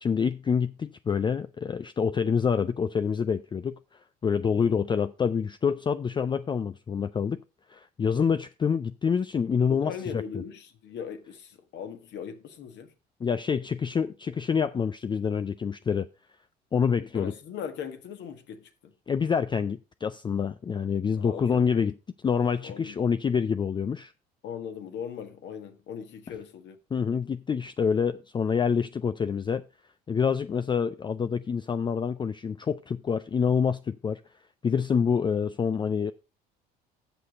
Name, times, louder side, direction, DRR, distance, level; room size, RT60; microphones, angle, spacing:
voice 1, 0.0-3.8 4.2-7.4 7.7-10.2 13.2-16.1 16.7-17.3 19.1-22.0 22.2-24.1 26.9-29.7 30.1-34.2 34.6-36.1, left 6 dB, 25° left, 0.4 m, -27 dB
voice 2, 9.7-12.9 17.1-18.9 21.2-21.8 22.6-23.1 24.4-26.8, left 7 dB, 60° left, 1.6 m, -39 dB
7.8 x 6.5 x 5.2 m
supercardioid pair, 70°, 20 cm